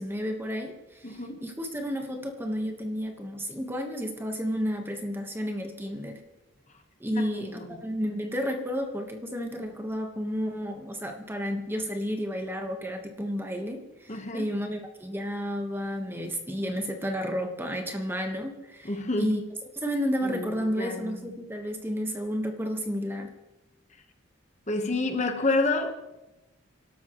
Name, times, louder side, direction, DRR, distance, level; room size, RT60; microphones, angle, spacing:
voice 1, 0.0-6.2 7.0-19.4 19.7-23.3, equal, 10° right, 1.3 m, -32 dB
voice 2, 1.0-1.4 7.4-7.8 14.1-14.5 18.8-19.3 20.2-20.5 20.8-21.2 24.7-25.9, left 2 dB, 35° left, 1.2 m, -28 dB
27.0 x 12.5 x 3.1 m
head